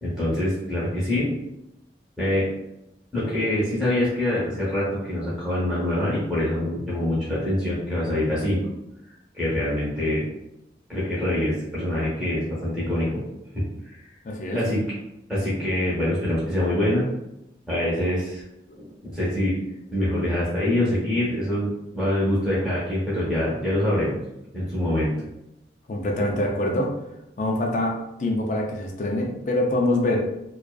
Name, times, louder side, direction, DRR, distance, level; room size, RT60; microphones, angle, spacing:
voice 1, 0.0-1.3 2.2-2.5 3.1-8.6 9.3-10.2 10.9-13.2 13.5-14.0 14.5-14.8 15.3-17.1 17.7-18.4 18.8-19.6 19.9-24.2 24.5-25.1, left 1 dB, ahead, -10 dB, 0.7 m, -25 dB
voice 2, 14.2-14.6 18.7-18.8 25.9-26.9 27.4-30.3, left 1 dB, 45° left, 1 dB, 0.4 m, -25 dB
2.5 x 2.2 x 2.2 m, 0.88 s
head